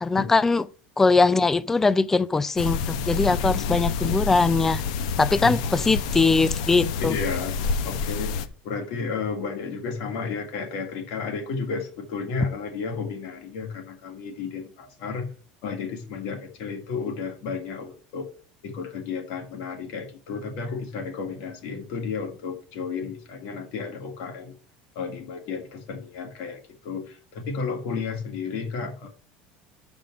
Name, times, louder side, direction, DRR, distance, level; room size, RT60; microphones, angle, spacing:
voice 1, 0.0-0.6 1.0-4.8 5.2-7.1, left 3 dB, 10° left, 0.3 m, -21 dB
sound 1, 2.6-8.5, left 5 dB, 85° left, 0.9 m, -28 dB
voice 2, 7.0-7.6 7.8-15.3 15.6-18.3 18.6-24.6 24.9-29.1, left 5 dB, 65° left, 2.6 m, -32 dB
6.3 x 5.3 x 6.9 m
cardioid pair, 155°, 4 cm